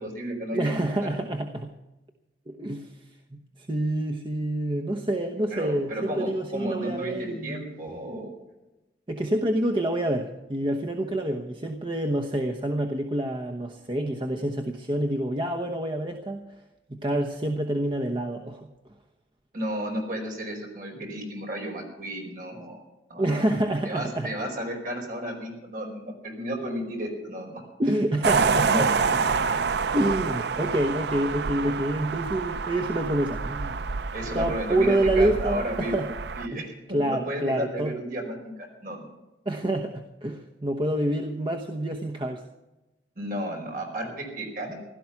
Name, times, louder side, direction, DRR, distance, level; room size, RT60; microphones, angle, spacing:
voice 1, 0.0-0.8 1.1-1.2 5.5-8.3 19.5-22.8 23.1-23.3 23.8-27.6 28.6-28.9 34.1-35.9 36.4-38.5 38.8-39.1 43.2-44.8, equal, 50° right, 1 dB, 4.9 m, -33 dB
voice 2, 0.5-1.7 2.5-2.9 3.3-7.6 9.1-16.4 16.9-18.7 23.2-24.3 27.8-28.9 29.9-33.8 34.3-36.1 36.5-36.6 36.9-37.9 39.4-42.4, right 1 dB, 30° right, 4 dB, 1.0 m, -27 dB
sound 1, 28.2-36.5, right 5 dB, 70° right, 0.5 m, -27 dB
16.5 x 12.5 x 5.9 m, 1.0 s
head